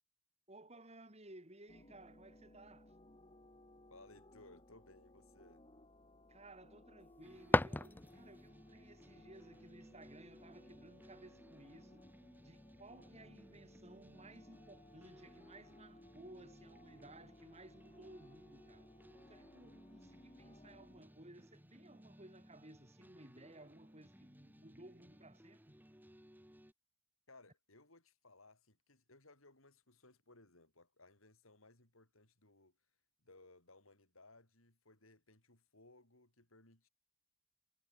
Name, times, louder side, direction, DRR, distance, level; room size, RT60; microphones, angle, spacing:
voice 1, 0.5-2.9 6.3-12.1 12.4-18.9 19.3-25.8, right 1 dB, 30° right, 6.2 m, -58 dB
sound 1, 1.7-21.0, left 1 dB, 25° left, 2.6 m, -62 dB
voice 2, 3.9-5.7 27.3-32.8 33.2-36.9, left 2 dB, 80° left, 7.4 m, -63 dB
sound 2, 7.0-8.5, left 2 dB, 10° left, 0.3 m, -35 dB
sound 3, 7.2-26.7, equal, 10° right, 3.7 m, -62 dB
head